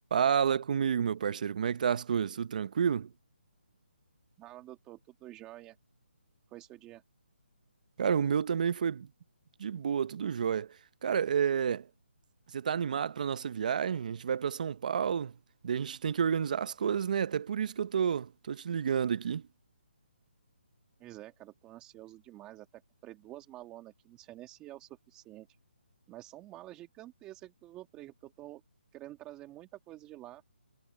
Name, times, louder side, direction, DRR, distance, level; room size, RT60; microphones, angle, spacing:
voice 1, 0.1-3.1 8.0-9.1 9.6-10.7 11.0-11.9 12.5-15.3 15.6-19.4, right 7 dB, 45° right, 0.9 m, -30 dB
voice 2, 4.4-5.8 6.5-7.0 21.0-25.5 26.1-28.6 28.9-30.4, right 15 dB, 15° right, 1.8 m, -49 dB
hypercardioid pair, 165°, 6 cm